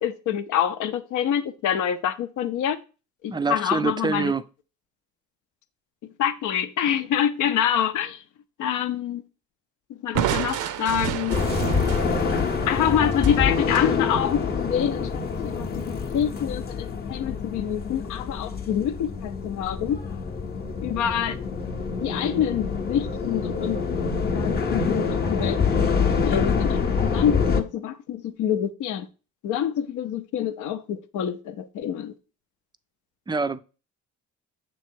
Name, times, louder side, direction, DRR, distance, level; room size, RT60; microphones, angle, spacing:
voice 1, 0.0-2.8 3.2-4.3 6.2-8.2 8.6-9.2 10.0-11.4 12.6-20.0 20.8-21.4 22.0-23.8 24.2-29.1 29.4-32.1, left 9 dB, 80° left, 0.6 m, -26 dB
voice 2, 3.3-4.4 33.3-33.6, right 4 dB, 15° right, 0.4 m, -25 dB
Crushing, 10.1-13.9, right 10 dB, 80° right, 0.6 m, -30 dB
sound 1, 11.3-27.6, left 5 dB, 30° left, 0.7 m, -26 dB
6.9 x 3.1 x 4.5 m
cardioid pair, 90°, 30 cm